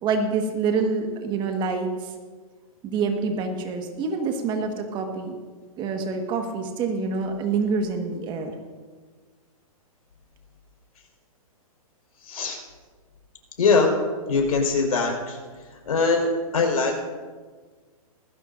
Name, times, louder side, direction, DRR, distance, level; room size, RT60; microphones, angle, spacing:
voice 1, 0.0-2.1 2.8-5.3 5.8-8.5, right 4 dB, 25° right, 4 dB, 1.6 m, -26 dB
voice 2, 12.2-12.6 13.6-13.9 14.3-15.4 15.8-17.0, left 4 dB, 80° left, 1 dB, 4.9 m, -22 dB
19.5 x 16.0 x 2.7 m, 1.5 s
hypercardioid pair, 140°, 19 cm